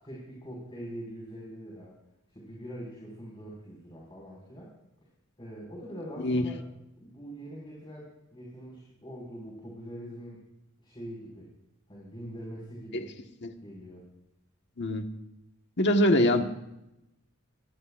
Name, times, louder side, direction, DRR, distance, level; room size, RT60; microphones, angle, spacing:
voice 1, 0.0-2.0 2.3-4.7 5.4-6.6 7.0-10.4 10.8-11.5 11.9-13.1 13.6-14.0, equal, 25° left, -4 dB, 5.6 m, -43 dB
voice 2, 15.8-16.4, left 1 dB, 55° left, 4 dB, 1.5 m, -23 dB
25.0 x 19.0 x 2.6 m, 0.87 s
head